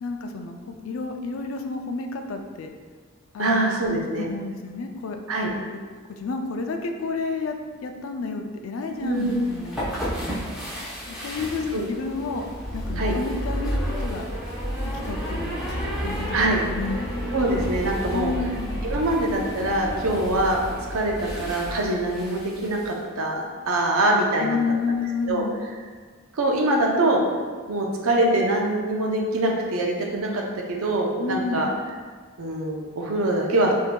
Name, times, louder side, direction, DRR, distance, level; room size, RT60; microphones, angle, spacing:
voice 1, 0.0-2.7 3.3-5.2 5.5-5.6 6.1-7.6 7.8-9.8 11.1-12.5 12.7-14.2 14.8-15.5 16.0-17.1 18.1-18.8 24.4-25.6 31.2-31.7, left 4 dB, 75° left, 5 dB, 0.4 m, -30 dB
voice 2, 3.4-4.3 5.3-5.5 9.0-9.4 11.7-11.8 12.2-12.3 13.0-13.2 16.3-16.6 17.3-18.3 18.8-24.6 25.3-25.4 26.3-27.2 27.7-30.4 30.7-31.7 32.4-33.7, right 1 dB, 85° right, 0 dB, 0.6 m, -24 dB
sound 1, 9.1-22.9, equal, 5° right, 0.7 m, -31 dB
5.1 x 2.7 x 2.2 m, 1.5 s
head